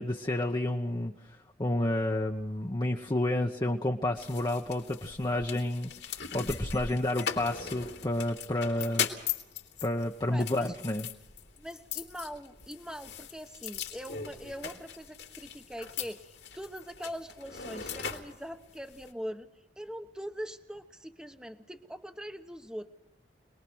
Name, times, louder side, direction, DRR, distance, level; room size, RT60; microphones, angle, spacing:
voice 1, 0.0-5.9 6.3-9.1 9.8-11.1, left 1 dB, 25° left, 1 dB, 1.1 m, -30 dB
sound 1, 4.2-19.1, left 7 dB, 80° left, 3.4 m, -39 dB
voice 2, 10.3-10.7 11.6-19.5 19.8-22.9, equal, 5° right, 7 dB, 1.2 m, -42 dB
26.5 x 21.0 x 6.3 m, 0.91 s
head